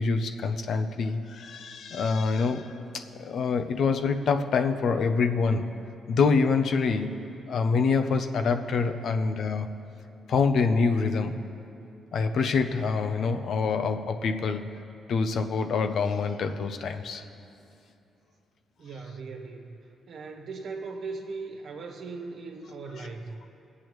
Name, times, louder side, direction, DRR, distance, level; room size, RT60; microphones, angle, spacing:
voice 1, 0.0-5.7 6.1-7.2 7.5-9.7 10.3-11.4 12.1-14.6 15.1-17.2, left 4 dB, 60° left, 7 dB, 0.6 m, -26 dB
voice 2, 18.8-23.4, right 4 dB, 60° right, 2 dB, 1.3 m, -39 dB
22.5 x 8.4 x 3.1 m, 2.7 s
cardioid pair, 130°, 0 cm